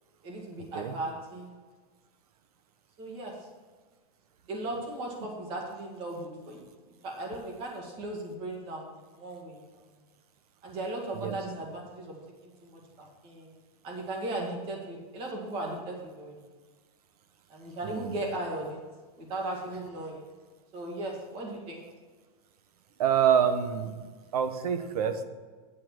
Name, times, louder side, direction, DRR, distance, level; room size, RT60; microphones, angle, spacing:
voice 1, 0.2-1.5 3.0-3.3 4.5-6.6 7.0-8.8 9.2-9.6 10.6-12.1 12.4-13.5 13.8-16.4 17.5-18.8 19.2-20.2 20.7-21.8, right 2 dB, 25° right, 0 dB, 2.0 m, -37 dB
voice 2, 17.8-18.2 23.0-24.1 24.3-25.2, right 8 dB, 70° right, 10 dB, 1.1 m, -27 dB
8.9 x 8.5 x 4.6 m, 1.4 s
supercardioid pair, 170°, 20 cm